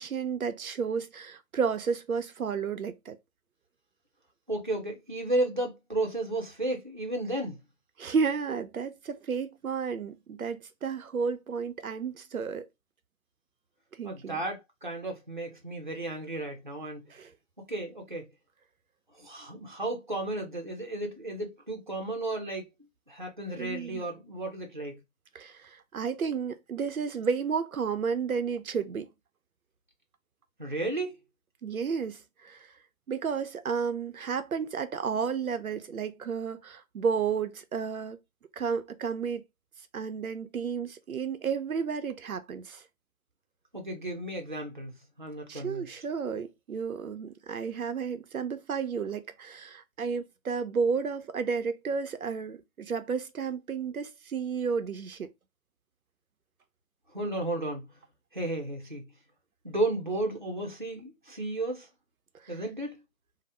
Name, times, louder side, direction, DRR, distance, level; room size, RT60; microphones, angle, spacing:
voice 1, 0.0-3.2 8.0-12.7 14.0-14.4 17.1-17.3 23.6-24.0 25.3-29.1 31.6-32.7 33.1-38.2 38.5-39.4 39.9-42.8 45.5-55.3, right 6 dB, 90° right, 0.6 m, -32 dB
voice 2, 4.5-7.6 14.0-17.1 17.7-18.3 19.1-22.7 23.1-25.0 30.6-31.1 43.7-44.9 45.2-45.9 57.1-57.9 58.3-59.1 59.6-61.9 62.5-63.0, right 2 dB, 35° right, 0.5 m, -33 dB
2.7 x 2.0 x 3.3 m
figure-of-eight pair, 170°, 41 cm